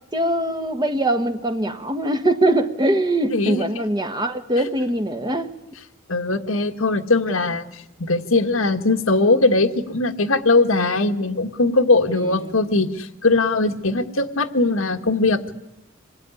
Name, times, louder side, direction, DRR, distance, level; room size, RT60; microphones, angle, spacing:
voice 1, 0.1-5.5 12.1-12.5, right 1 dB, 20° right, 8 dB, 1.4 m, -22 dB
voice 2, 3.3-3.6 6.1-7.6 8.0-15.5, left 3 dB, 85° left, 5 dB, 1.7 m, -20 dB
26.5 x 21.5 x 9.9 m, 0.92 s
head